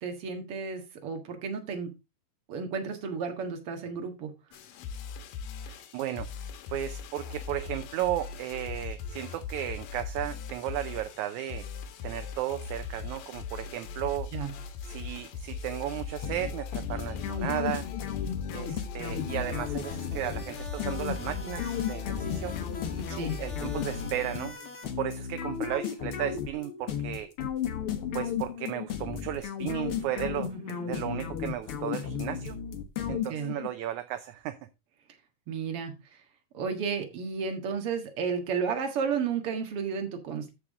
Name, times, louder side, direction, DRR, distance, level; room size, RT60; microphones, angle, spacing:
voice 1, 0.0-1.9 2.5-4.3 14.3-14.5 22.9-23.4 30.5-31.0 33.1-33.5 35.5-36.2 36.5-40.5, right 6 dB, 50° right, 2.3 m, -33 dB
sound 1, 4.5-24.1, left 6 dB, 85° left, 2.8 m, -39 dB
voice 2, 5.7-6.3 6.7-11.7 12.0-14.3 14.8-17.9 18.5-22.6 23.1-24.6 25.0-27.3 28.1-30.5 30.8-32.6 33.1-34.6, right 12 dB, 75° right, 1.9 m, -34 dB
sound 2, 16.2-33.7, left 8 dB, 60° left, 1.5 m, -34 dB
sound 3, 19.0-24.9, left 3 dB, 30° left, 1.5 m, -45 dB
14.0 x 4.9 x 3.6 m
omnidirectional pair, 3.8 m